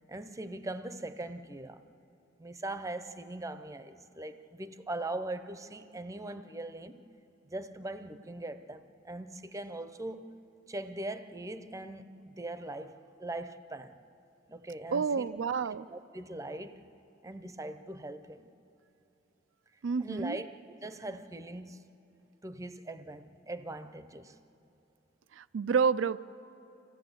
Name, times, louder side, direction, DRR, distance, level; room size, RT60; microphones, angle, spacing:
voice 1, 0.1-1.8 2.4-7.0 7.5-10.3 10.7-14.0 14.5-15.3 15.9-16.8 17.2-18.5 20.0-20.5 20.8-21.9 22.4-24.4, right 2 dB, 15° right, 0.7 m, -41 dB
voice 2, 14.9-15.9 19.8-20.4 25.3-26.2, right 5 dB, 90° right, 0.4 m, -29 dB
26.0 x 16.0 x 8.0 m
head